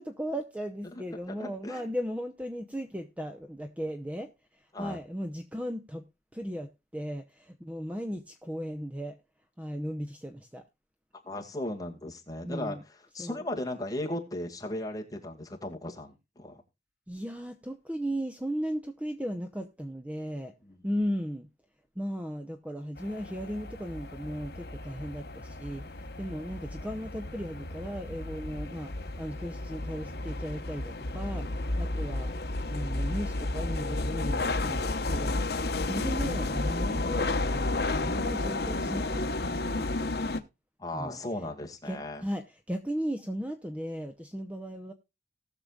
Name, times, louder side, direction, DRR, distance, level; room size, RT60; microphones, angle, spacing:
voice 1, 0.0-6.1 6.3-9.2 9.6-10.6 12.4-12.8 13.2-13.4 17.1-20.5 20.8-21.5 22.0-32.3 32.7-40.0 40.9-41.2 41.9-44.9, equal, 10° right, 0.7 m, -36 dB
voice 2, 1.4-1.9 4.7-5.0 11.2-12.8 13.1-16.6 20.7-20.8 40.8-42.2, left 1 dB, 20° left, 2.0 m, -36 dB
sound 1, 23.0-40.4, left 2 dB, 60° left, 1.0 m, -32 dB
19.0 x 6.7 x 2.4 m
head